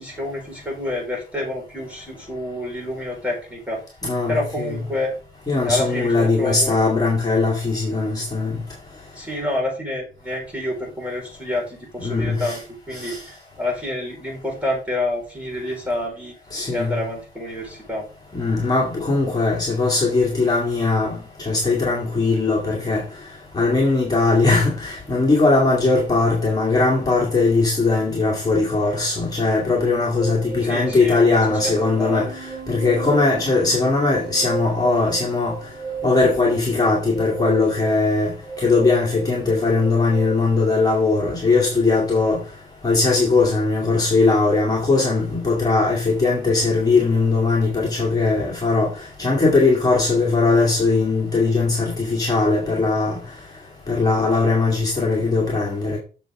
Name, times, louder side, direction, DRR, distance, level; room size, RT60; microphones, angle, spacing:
voice 1, 0.0-3.8 4.3-5.1 5.5-6.8 9.1-12.6 12.9-16.3 16.7-18.1 30.6-32.3, left 1 dB, 10° right, 4.5 m, -28 dB
voice 2, 4.0-4.8 5.5-8.5 12.0-12.6 12.9-13.2 16.5-17.0 18.3-21.2 21.5-23.0 23.5-32.3 32.7-35.5 36.0-38.3 38.6-42.4 42.8-48.9 49.2-53.2 53.9-56.0, left 3 dB, 20° left, 2.0 m, -19 dB
sound 1, 30.2-40.3, right 6 dB, 85° right, 1.8 m, -34 dB
7.1 x 6.9 x 3.6 m
wide cardioid pair, 140°, 17 cm